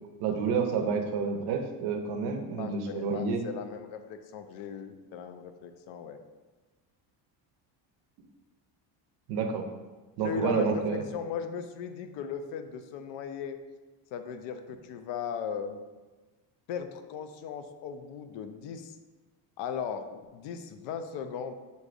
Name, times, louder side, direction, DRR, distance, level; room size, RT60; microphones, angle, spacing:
voice 1, 0.2-3.4 9.3-9.7 10.2-11.0, right 5 dB, 60° right, 4 dB, 0.6 m, -29 dB
voice 2, 2.6-6.2 10.2-13.6 14.1-15.8 16.7-19.0 19.6-21.5, left 7 dB, 75° left, 8 dB, 0.5 m, -37 dB
6.2 x 2.6 x 2.5 m, 1.2 s
cardioid pair, 150°, 44 cm